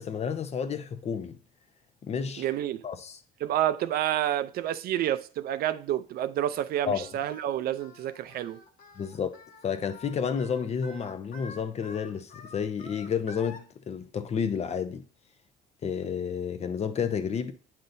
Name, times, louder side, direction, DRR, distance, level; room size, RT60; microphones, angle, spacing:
voice 1, 0.0-1.4 2.0-2.4 2.8-3.2 6.9-7.1 9.0-9.4 9.6-15.0 15.8-17.5, left 7 dB, 40° left, 0.7 m, -31 dB
voice 2, 2.4-2.9 3.4-8.6, right 12 dB, 65° right, 0.5 m, -29 dB
Singing, 6.7-13.6, left 3 dB, 55° left, 1.3 m, -48 dB
9.0 x 5.6 x 2.6 m
cardioid pair, 110°, 17 cm